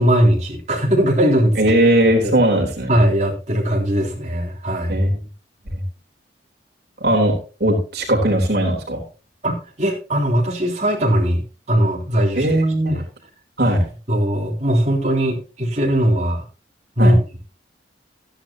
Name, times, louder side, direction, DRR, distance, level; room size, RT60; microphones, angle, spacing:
voice 1, 0.0-1.8 2.2-2.3 2.9-5.0 9.4-11.4 11.7-12.5 12.9-13.0 14.1-16.5 17.0-17.4, equal, 40° right, -2 dB, 3.5 m, -19 dB
voice 2, 1.6-2.9 4.9-5.2 5.7-5.8 7.0-7.4 7.6-9.0 12.4-13.0 13.6-13.8 17.0-17.1, right 1 dB, 60° right, -2 dB, 3.7 m, -18 dB
14.0 x 10.5 x 2.9 m, 0.33 s
head